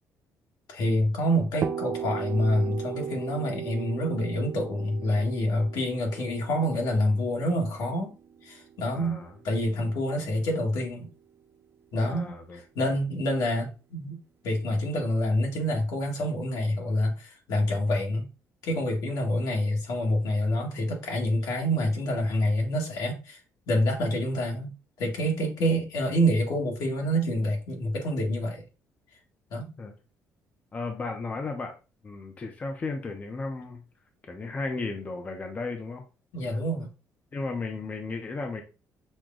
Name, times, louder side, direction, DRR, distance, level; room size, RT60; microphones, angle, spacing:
voice 1, 0.7-8.1 8.4-9.2 9.4-11.1 11.9-14.2 14.4-18.3 18.6-23.4 23.7-24.7 25.0-28.6 29.5-29.7 36.3-36.9, equal, 75° left, 1.7 m, -27 dB
sound 1, 1.6-9.3, right 7 dB, 35° right, 0.4 m, -36 dB
voice 2, 8.9-9.3 12.0-12.6 29.8-29.9 30.7-31.8 32.0-33.8 34.2-36.0 37.3-38.6, left 3 dB, 25° left, 0.6 m, -34 dB
6.2 x 2.2 x 3.7 m
cardioid pair, 155°, 7 cm